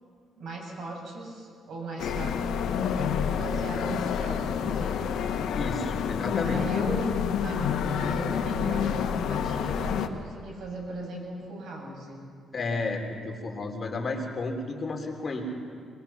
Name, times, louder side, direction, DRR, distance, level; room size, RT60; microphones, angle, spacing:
voice 1, 0.4-5.2 6.4-12.2, right 2 dB, 65° right, 0 dB, 7.5 m, -37 dB
sound 1, 2.0-10.1, left 7 dB, 80° left, 1.3 m, -28 dB
voice 2, 5.5-6.6 12.5-15.4, left 3 dB, 40° left, 2 dB, 3.4 m, -32 dB
25.5 x 21.5 x 5.9 m, 2.1 s
cardioid pair, 90°, 0 cm